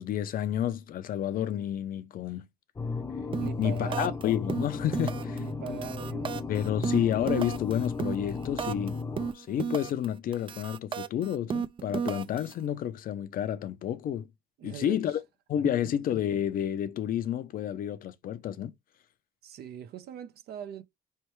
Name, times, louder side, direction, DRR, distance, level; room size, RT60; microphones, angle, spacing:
voice 1, 0.0-2.5 3.6-5.4 6.5-9.0 9.3-14.3 14.6-15.2 15.5-18.7, left 10 dB, 60° left, 0.6 m, -30 dB
sound 1, 2.8-9.3, left 4 dB, 20° left, 0.7 m, -35 dB
sound 2, 3.3-3.6 3.9-4.2 4.5-5.4 5.7-8.9 9.2-10.1 10.3-12.5, right 6 dB, 30° right, 0.4 m, -33 dB
voice 2, 3.4-4.2 5.2-6.4 14.6-15.0 19.4-20.8, right 9 dB, 70° right, 0.8 m, -41 dB
4.3 x 3.4 x 3.1 m
cardioid pair, 110°, 17 cm